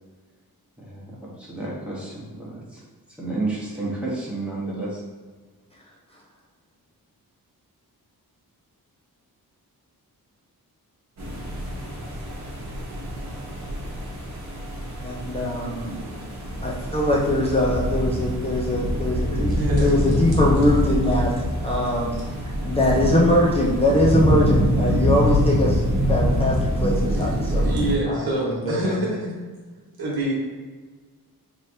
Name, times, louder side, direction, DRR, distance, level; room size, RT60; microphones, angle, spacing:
voice 1, 0.8-2.8 3.2-5.0, right 2 dB, 5° right, -7 dB, 1.1 m, -31 dB
sound 1, 11.2-28.0, equal, 45° right, 1.0 m, -25 dB
voice 2, 15.0-15.9 16.6-19.5 19.8-21.3 21.6-22.2 22.6-25.8 26.1-27.6 28.1-28.9, left 1 dB, 15° left, -5 dB, 0.5 m, -22 dB
voice 3, 19.5-19.9 27.1-29.4 30.0-30.3, right 1 dB, 75° right, -5 dB, 1.2 m, -26 dB
3.2 x 3.0 x 2.6 m, 1.4 s
wide cardioid pair, 90°, 37 cm